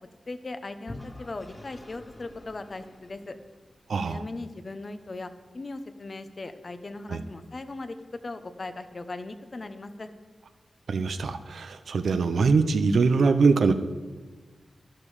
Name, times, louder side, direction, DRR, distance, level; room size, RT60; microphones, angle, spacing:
voice 1, 0.3-3.4 4.0-10.1, left 2 dB, 45° left, 9 dB, 1.0 m, -38 dB
Vehicle / Engine, 0.9-3.9, left 2 dB, 25° left, 1.2 m, -46 dB
voice 2, 3.9-4.2 7.1-7.2 10.9-13.7, right 4 dB, 80° right, 10 dB, 0.8 m, -23 dB
12.5 x 12.0 x 5.0 m, 1.4 s
cardioid pair, 60°, 0 cm